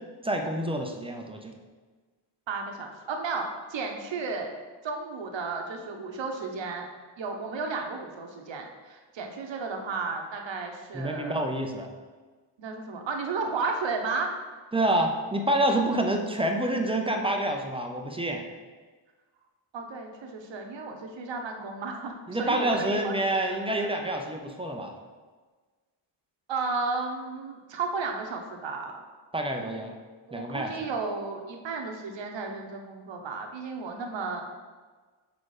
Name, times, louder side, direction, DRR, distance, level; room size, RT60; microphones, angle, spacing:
voice 1, 0.2-1.5 10.9-11.9 14.7-18.4 22.3-24.9 29.3-29.9 30.3-30.9, right 1 dB, 15° right, 3 dB, 0.4 m, -28 dB
voice 2, 2.5-4.5 4.8-6.8 7.2-11.4 12.6-14.3 19.7-23.6 26.5-29.0 30.3-34.4, right 4 dB, 65° right, 3 dB, 0.9 m, -33 dB
4.9 x 4.2 x 4.7 m, 1.4 s
wide cardioid pair, 155°, 49 cm